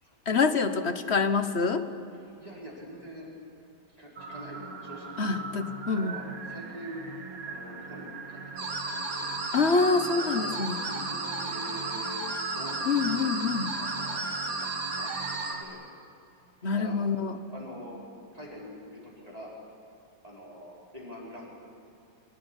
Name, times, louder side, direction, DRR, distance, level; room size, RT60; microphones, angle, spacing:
voice 1, 0.3-1.8 5.2-6.2 9.5-10.8 12.8-13.7 16.6-17.4, left 4 dB, 40° left, 10 dB, 1.2 m, -26 dB
voice 2, 2.1-3.3 3.9-5.3 5.9-7.0 7.4-9.3 9.8-10.5 10.8-13.3 13.8-14.3 14.6-15.8 16.6-17.0 17.3-18.0 18.3-19.5 20.2-21.5, equal, 20° right, -4 dB, 5.1 m, -44 dB
sound 1, 4.2-15.6, right 4 dB, 50° right, 2.1 m, -41 dB
sound 2, 8.6-15.5, right 3 dB, 70° right, 3.5 m, -34 dB
24.5 x 18.5 x 10.0 m, 2.7 s
omnidirectional pair, 2.1 m